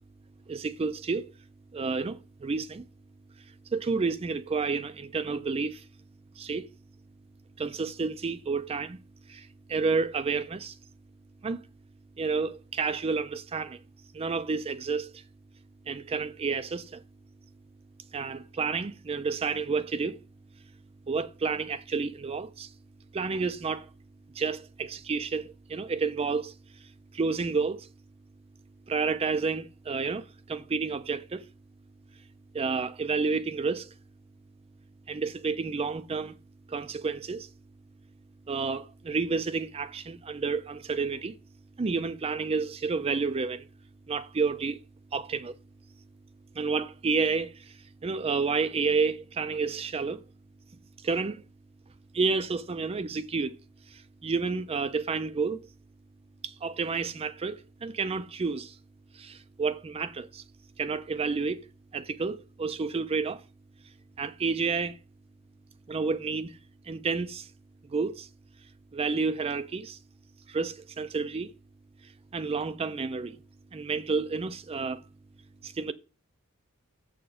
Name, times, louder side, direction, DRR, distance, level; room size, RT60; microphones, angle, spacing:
voice 1, 0.5-1.3 1.7-2.9 3.7-5.8 6.4-6.7 7.6-9.0 9.3-10.8 11.4-11.6 12.2-13.8 14.1-15.2 15.9-17.0 18.1-20.2 21.1-22.7 23.1-23.9 24.3-27.9 28.9-31.5 32.5-33.9 35.1-36.4 36.7-37.5 38.5-41.4 41.8-43.7 44.1-44.8 45.1-45.6 46.5-50.2 51.0-51.4 52.1-53.6 53.9-55.7 56.4-58.8 59.1-60.4 60.8-61.7 61.9-63.4 64.2-65.0 65.9-66.6 66.9-67.5 67.8-68.3 68.9-70.0 70.5-71.5 72.0-73.4 73.7-75.0 75.6-75.9, right 4 dB, 25° right, 0.4 m, -30 dB
7.1 x 4.9 x 6.0 m
head